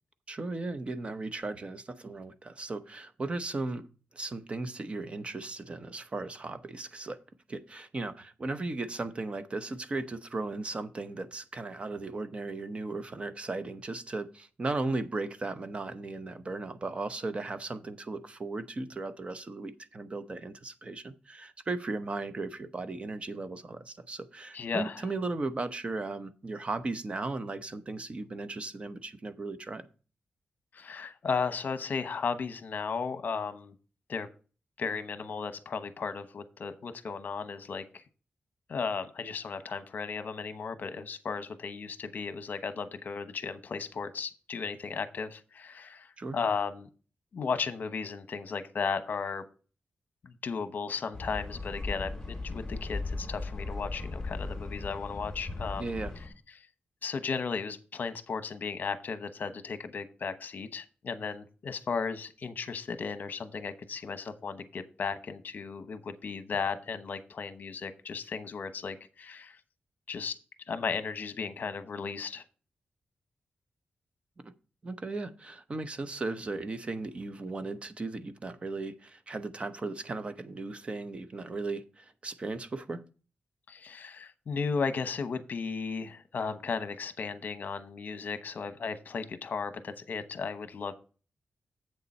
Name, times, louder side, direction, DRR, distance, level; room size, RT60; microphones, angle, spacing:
voice 1, 0.3-3.9 4.1-7.2 7.5-29.9 46.2-46.4 55.8-56.1 74.8-83.0, right 3 dB, 35° right, 0.8 m, -36 dB
voice 2, 24.5-25.1 30.7-33.7 34.1-34.3 34.8-38.0 38.7-46.9 47.3-49.4 50.2-56.0 56.6-56.7 57.0-69.6 70.1-70.4 70.7-72.4 83.7-90.9, left 5 dB, 60° left, 1.0 m, -35 dB
sound 1, 51.1-56.3, left 3 dB, 10° left, 2.6 m, -37 dB
8.1 x 6.8 x 4.3 m
wide cardioid pair, 110°, 3 cm